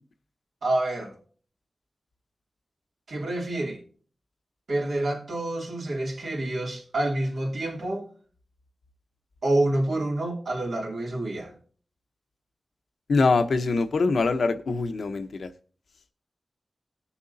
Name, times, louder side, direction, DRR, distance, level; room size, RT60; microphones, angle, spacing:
voice 1, 0.6-1.1 3.1-3.8 4.7-8.1 9.4-11.5, right 1 dB, 80° right, 3.2 m, -27 dB
voice 2, 13.1-15.5, left 3 dB, 80° left, 1.0 m, -23 dB
19.5 x 7.0 x 2.8 m
wide cardioid pair, 75°, 0 cm